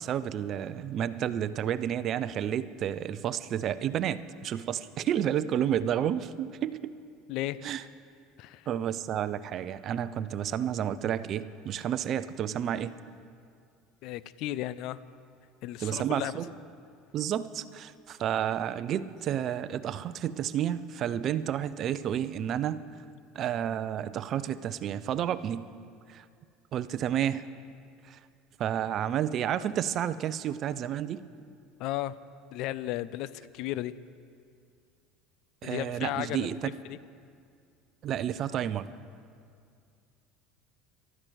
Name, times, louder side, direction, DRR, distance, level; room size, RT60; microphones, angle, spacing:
voice 1, 0.0-6.9 7.6-7.8 8.7-13.0 15.8-16.5 17.1-22.8 23.3-25.7 26.1-26.2 26.7-27.4 28.1-28.2 28.6-31.2 35.6-36.7 38.0-38.8, right 10 dB, 50° right, 15 dB, 0.6 m, -31 dB
voice 2, 7.3-7.6 8.4-8.7 14.0-15.0 15.6-16.3 31.8-32.2 32.5-33.9 35.6-37.0, left 14 dB, 65° left, 17 dB, 0.5 m, -34 dB
14.5 x 12.5 x 6.3 m, 2.3 s
hypercardioid pair, 80°, 0 cm